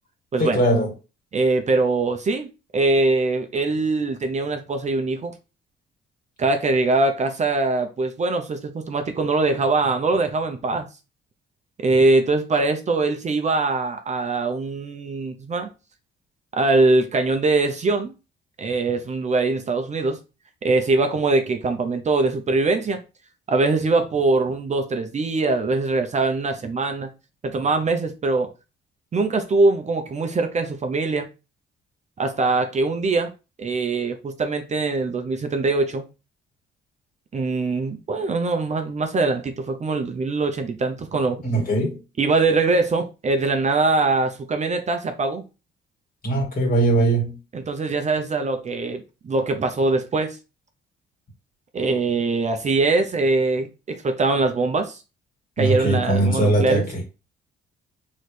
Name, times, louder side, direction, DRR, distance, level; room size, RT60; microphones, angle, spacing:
voice 1, 0.4-0.9 41.4-42.0 46.2-47.4 55.6-57.0, right 2 dB, 45° left, 2.1 m, -20 dB
voice 2, 1.3-2.5 2.7-5.3 6.4-10.9 11.8-15.7 16.5-18.1 18.6-20.2 20.6-23.0 23.5-27.1 27.4-28.5 29.1-31.3 32.2-33.3 33.6-36.0 37.3-41.4 42.2-45.4 47.5-50.4 51.7-55.0 55.6-56.8, right 3 dB, 35° right, 0.7 m, -22 dB
4.1 x 3.2 x 3.3 m
cardioid pair, 90°, 20 cm